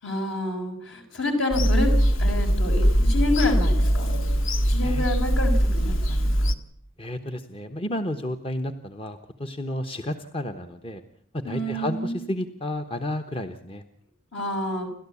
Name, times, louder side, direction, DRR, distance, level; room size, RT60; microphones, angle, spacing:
voice 1, 0.0-1.9 2.2-4.1 4.6-6.3 11.4-12.3 14.3-14.9, left 1 dB, 65° left, 4 dB, 6.0 m, -28 dB
Bird vocalization bird call bird song / Telephone, 1.5-6.5, equal, 80° left, 1.7 m, -21 dB
voice 2, 7.0-11.0 11.3-13.8, left 1 dB, 25° left, 6 dB, 1.1 m, -31 dB
30.0 x 12.5 x 8.5 m, 0.67 s
head